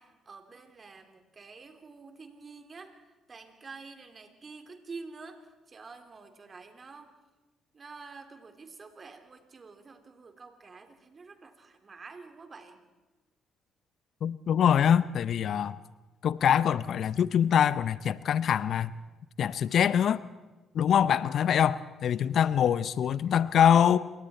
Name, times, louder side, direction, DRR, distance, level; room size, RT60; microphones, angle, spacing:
voice 1, 0.0-3.0 3.3-7.1 7.7-12.8 22.4-22.5, right 4 dB, 40° right, 3.3 m, -48 dB
voice 2, 14.2-15.8 16.2-18.9 19.4-20.2 20.7-24.0, left 9 dB, 60° left, 0.7 m, -24 dB
27.5 x 23.5 x 4.4 m
hypercardioid pair, 50°, 0 cm